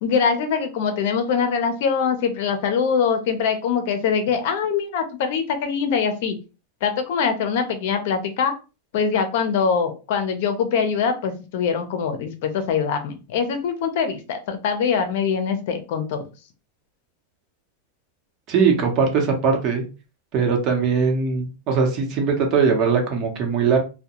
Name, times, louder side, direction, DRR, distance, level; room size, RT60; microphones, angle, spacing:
voice 1, 0.0-6.4 6.8-8.5 8.9-16.2, left 6 dB, 65° left, 7 dB, 0.6 m, -23 dB
voice 2, 18.5-19.8 20.3-23.8, right 5 dB, 40° right, 2 dB, 0.9 m, -20 dB
2.3 x 2.1 x 2.9 m, 0.31 s
supercardioid pair, 130°, 0 cm